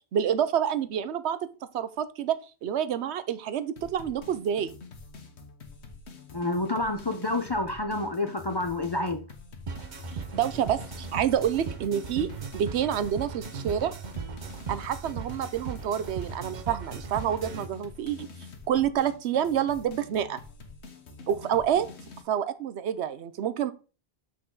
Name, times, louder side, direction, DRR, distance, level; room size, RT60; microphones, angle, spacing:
voice 1, 0.1-1.4 1.7-4.7 10.3-13.9 14.7-18.3 18.7-20.4 21.3-21.9 22.3-23.7, right 9 dB, 80° right, 0.9 m, -28 dB
sound 1, 3.8-22.2, left 3 dB, 80° left, 1.4 m, -46 dB
voice 2, 6.3-9.2, left 2 dB, 30° left, 0.5 m, -28 dB
sound 2, 9.7-17.7, right 6 dB, 45° right, 0.8 m, -38 dB
6.4 x 6.0 x 3.8 m
omnidirectional pair, 1.1 m